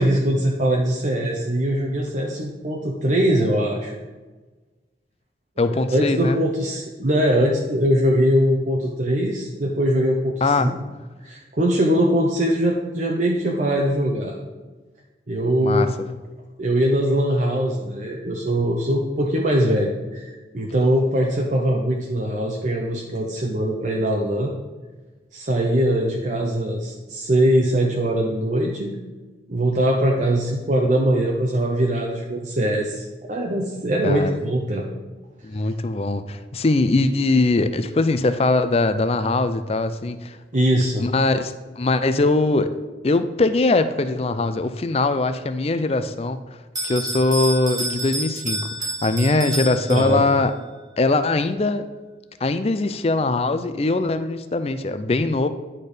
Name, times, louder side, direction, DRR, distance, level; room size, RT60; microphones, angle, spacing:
voice 1, 0.0-3.9 5.7-10.8 11.2-14.4 15.3-15.9 16.6-24.5 25.3-29.0 29.5-34.9 35.5-35.6 40.5-41.1 49.9-50.3, right 1 dB, 45° right, -1 dB, 0.8 m, -21 dB
voice 2, 5.6-6.4 10.4-10.7 15.6-15.9 34.0-34.4 35.4-40.4 41.0-42.7 43.0-46.4 46.8-50.5 51.0-51.8 52.4-55.5, left 2 dB, 35° left, 11 dB, 0.5 m, -21 dB
Bell, 46.7-50.5, right 1 dB, 20° right, 1.4 m, -29 dB
10.0 x 4.4 x 5.0 m, 1.3 s
head